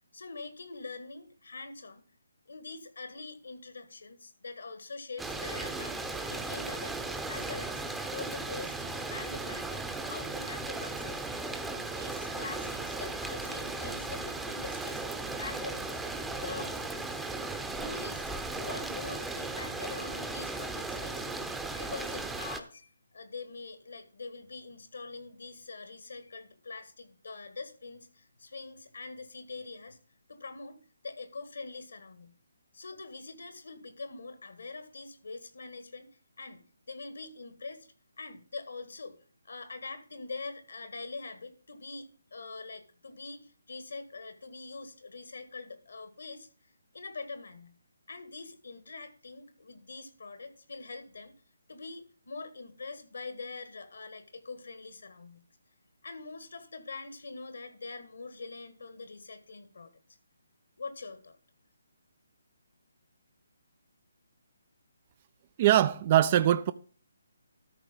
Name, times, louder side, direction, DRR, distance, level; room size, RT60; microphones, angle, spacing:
voice 1, 0.1-2.0 2.5-7.0 7.3-11.3 11.9-15.0 15.4-16.0 16.4-16.8 17.8-18.3 18.6-21.4 21.7-30.0 30.3-32.3 32.7-36.1 36.4-37.9 38.2-39.2 39.5-46.5 46.9-47.7 48.1-51.3 51.7-55.4 56.0-59.9 60.8-61.4, left 3 dB, 75° left, 1.8 m, -44 dB
sound 1, 5.2-22.6, right 3 dB, 5° right, 0.8 m, -36 dB
voice 2, 65.6-66.7, right 12 dB, 35° right, 0.4 m, -22 dB
13.0 x 4.8 x 5.5 m
figure-of-eight pair, 150°, 0 cm